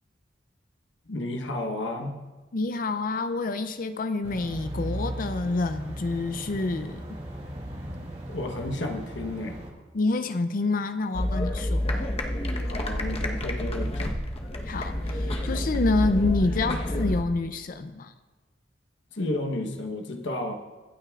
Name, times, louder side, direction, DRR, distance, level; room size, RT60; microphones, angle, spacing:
voice 1, 1.1-2.2 8.3-9.6 12.6-14.2 19.1-20.5, left 1 dB, 75° left, 3 dB, 1.1 m, -32 dB
voice 2, 2.5-7.2 9.9-12.1 14.6-18.1, left 3 dB, 50° left, 9 dB, 0.5 m, -28 dB
sound 1, 4.2-9.7, equal, 30° right, 1.8 m, -37 dB
sound 2, 11.1-17.2, left 1 dB, 35° left, 1.1 m, -28 dB
25.0 x 8.9 x 2.4 m, 1.2 s
head